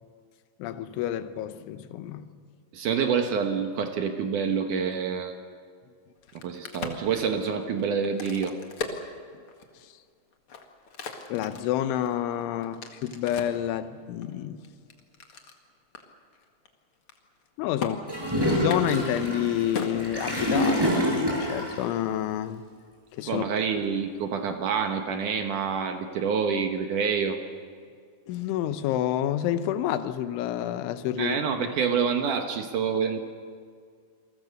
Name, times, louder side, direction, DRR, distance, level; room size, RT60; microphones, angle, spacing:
voice 1, 0.6-2.3 9.3-9.4 9.8-9.9 11.3-14.6 17.6-18.1 18.6-22.6 23.1-23.5 28.3-31.7, left 11 dB, 85° left, 3.4 m, -29 dB
voice 2, 2.7-5.3 6.4-8.6 23.3-27.4 31.2-33.2, right 6 dB, 70° right, 2.0 m, -27 dB
Crack, 6.2-9.8 10.3-13.6 14.2-15.6 15.9-16.0 16.3-16.7 16.9-17.5 17.8-17.9 18.6-20.8, left 5 dB, 55° left, 1.5 m, -38 dB
Gurgling / Toilet flush, 18.1-21.8, equal, 5° right, 6.1 m, -26 dB
28.5 x 22.0 x 6.7 m
omnidirectional pair, 5.4 m